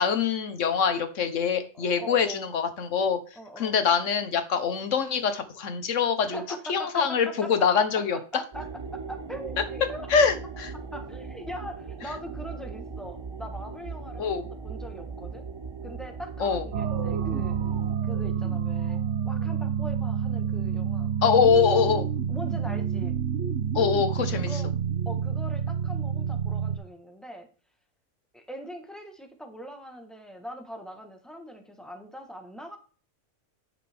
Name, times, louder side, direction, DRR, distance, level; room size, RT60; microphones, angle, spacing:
voice 1, 0.0-3.2 3.6-6.4 6.7-8.2 10.1-10.7 14.2-14.5 16.4-16.6 21.2-22.1 23.7-24.6, left 6 dB, 85° left, 8 dB, 1.4 m, -24 dB
voice 2, 1.7-2.5 3.3-3.8 6.2-7.8 8.3-10.1 10.7-15.4 15.8-17.6 18.0-21.5 22.3-23.1 24.3-24.7 25.0-27.5 28.3-32.8, equal, ahead, 4 dB, 1.1 m, -42 dB
sound 1, 8.5-18.0, right 4 dB, 35° right, 0.4 m, -39 dB
sound 2, 16.7-26.8, right 7 dB, 75° right, 1.1 m, -28 dB
10.0 x 5.7 x 3.5 m, 0.38 s
omnidirectional pair, 1.3 m